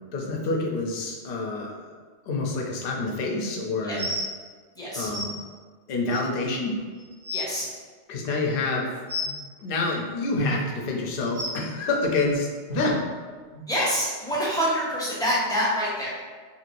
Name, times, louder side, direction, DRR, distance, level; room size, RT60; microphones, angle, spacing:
voice 1, 0.1-1.9 2.3-4.1 4.9-5.3 5.9-6.7 8.1-8.9 9.6-13.1, left 2 dB, 60° left, -1 dB, 0.7 m, -27 dB
sound 1, 3.9-4.3 5.1-5.2 6.1-6.2 6.8-6.9 7.1-7.5 9.1-9.3 10.3-10.5 11.3-11.5 12.7-12.8 13.5-13.6 14.3-14.4, left 2 dB, 85° right, 1.5 m, -30 dB
voice 2, 4.8-5.1 7.3-7.7 13.7-16.1, equal, 5° left, -8 dB, 0.7 m, -26 dB
3.0 x 2.8 x 2.5 m, 1.5 s
omnidirectional pair, 1.2 m